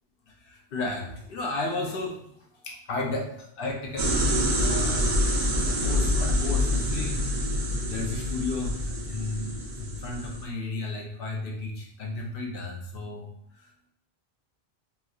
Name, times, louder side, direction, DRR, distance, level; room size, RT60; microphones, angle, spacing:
voice 1, 0.3-2.2 2.6-5.2 5.8-7.2 7.8-13.3 13.6-13.7, left 2 dB, 65° left, -1 dB, 0.8 m, -33 dB
sound 1, 4.0-10.4, equal, 50° right, 0.5 m, -26 dB
2.9 x 2.6 x 2.3 m, 0.72 s
omnidirectional pair, 1.0 m